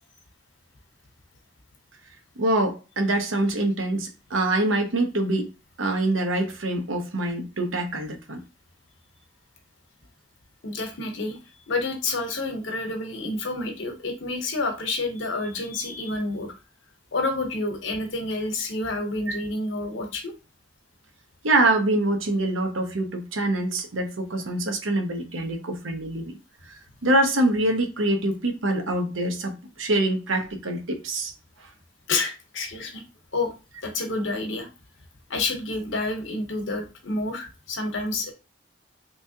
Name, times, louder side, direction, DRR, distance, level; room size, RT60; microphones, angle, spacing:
voice 1, 2.4-5.5 5.8-8.4 19.3-19.4 21.4-26.3 27.0-31.3, right 1 dB, 80° right, 0.8 m, -25 dB
voice 2, 10.6-11.4 11.7-16.5 17.1-20.3 32.1-33.0 33.3-33.5 33.8-34.7 35.3-38.3, left 2 dB, 70° left, 0.9 m, -29 dB
3.4 x 3.0 x 2.8 m
head